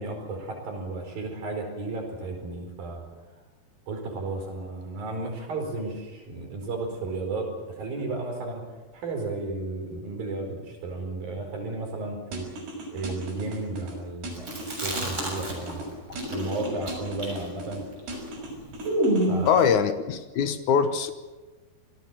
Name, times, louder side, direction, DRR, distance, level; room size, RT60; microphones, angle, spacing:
voice 1, 0.0-3.0 3.9-8.6 8.9-12.5 12.9-17.8 19.2-19.6, right 2 dB, 60° right, 3 dB, 6.3 m, -34 dB
sound 1, 12.3-13.9 14.2-15.9 16.2-17.8 18.1-19.7, right 2 dB, 80° right, 8.0 m, -38 dB
Chewing mastication, 14.4-15.8 16.1-19.5, right 1 dB, 15° right, 7.2 m, -28 dB
voice 2, 19.4-21.1, left 7 dB, 70° left, 10 dB, 1.9 m, -23 dB
26.5 x 19.0 x 7.4 m, 1.3 s
omnidirectional pair, 4.8 m